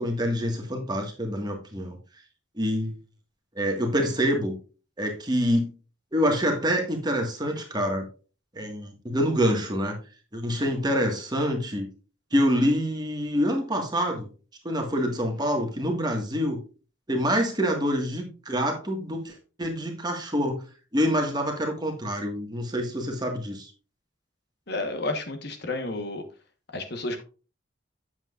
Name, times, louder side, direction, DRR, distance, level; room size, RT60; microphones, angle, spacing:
voice 1, 0.0-2.0 2.6-3.0 3.5-4.5 5.0-5.7 6.1-8.1 8.5-10.0 10.3-11.9 12.3-14.3 14.6-16.6 17.1-20.7 20.9-23.7, equal, 20° right, 3 dB, 1.6 m, -26 dB
voice 2, 24.7-26.2 26.7-27.2, left 2 dB, 55° left, 7 dB, 1.2 m, -31 dB
8.9 x 7.4 x 2.4 m, 0.34 s
head